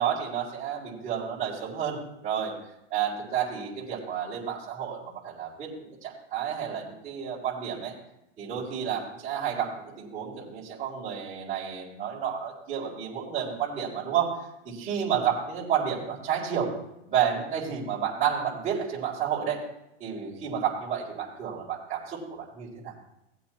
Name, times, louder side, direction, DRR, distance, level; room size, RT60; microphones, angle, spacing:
voice 1, 0.0-2.5 2.9-7.9 8.4-14.4 14.6-16.7 17.1-19.6 20.0-22.9, right 8 dB, 20° right, -9 dB, 4.2 m, -30 dB
18.5 x 8.3 x 3.0 m, 0.85 s
hypercardioid pair, 150°, 36 cm